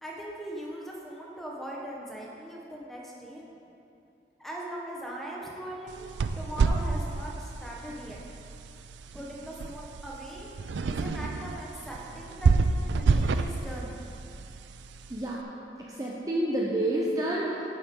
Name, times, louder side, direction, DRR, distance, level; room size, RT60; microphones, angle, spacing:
voice 1, 0.0-3.4 4.4-8.2 9.1-14.0, right 1 dB, ahead, -4 dB, 1.1 m, -40 dB
sound 1, 5.9-15.3, right 4 dB, 85° right, 0.4 m, -29 dB
voice 2, 15.8-17.7, right 1 dB, 20° right, -4 dB, 0.6 m, -29 dB
9.9 x 7.8 x 3.7 m, 2.7 s
head